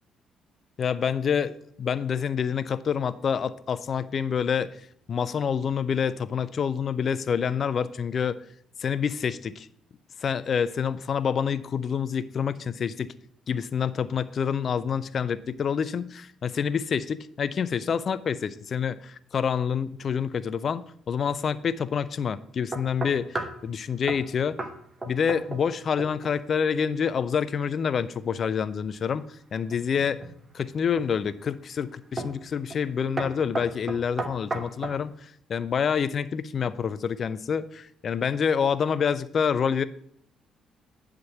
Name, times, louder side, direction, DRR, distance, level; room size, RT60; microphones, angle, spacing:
voice 1, 0.8-1.5 1.8-4.8 5.1-8.4 8.8-9.7 10.2-13.1 13.5-24.6 25.1-29.2 29.5-30.2 30.5-39.8, left 7 dB, 45° left, 16 dB, 0.4 m, -27 dB
sound 1, 22.7-23.6 24.1-24.3 24.6-24.8 25.0-25.7 26.0-26.4 29.7-30.4 31.0-31.4 32.2-32.4 32.7-32.9 33.2-35.0, right 2 dB, 25° right, 1.1 m, -34 dB
10.0 x 3.7 x 7.0 m, 0.67 s
figure-of-eight pair, 45°, 0 cm